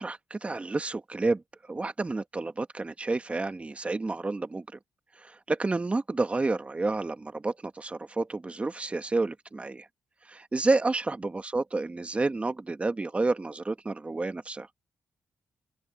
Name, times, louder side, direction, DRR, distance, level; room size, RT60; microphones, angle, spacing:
voice 1, 0.0-1.4 1.7-4.8 5.2-9.9 10.3-14.7, right 3 dB, 20° right, 1.3 m, -30 dB
cardioid pair, 105°, 6 cm